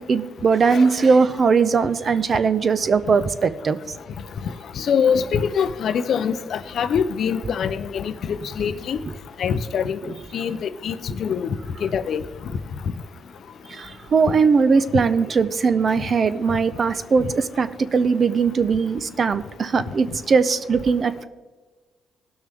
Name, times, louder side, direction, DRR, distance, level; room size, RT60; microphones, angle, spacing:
voice 1, 0.0-3.8 13.7-21.3, right 5 dB, 45° right, 12 dB, 0.7 m, -20 dB
voice 2, 4.8-9.0 9.4-10.0 10.3-11.5 11.8-12.2 17.2-17.3, left 7 dB, 60° left, 13 dB, 0.5 m, -24 dB
18.5 x 6.3 x 3.5 m, 1.3 s
cardioid pair, 85°, 0 cm